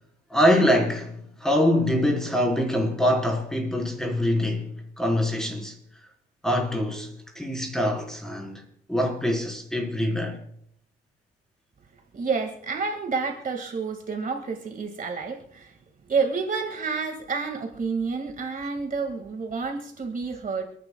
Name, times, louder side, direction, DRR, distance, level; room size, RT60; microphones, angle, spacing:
voice 1, 0.3-5.8 6.4-10.4, equal, 5° left, 4.1 m, -24 dB
voice 2, 12.1-15.7 16.1-20.6, right 4 dB, 45° right, 2.0 m, -29 dB
29.5 x 10.5 x 2.3 m
cardioid pair, 90°, 20 cm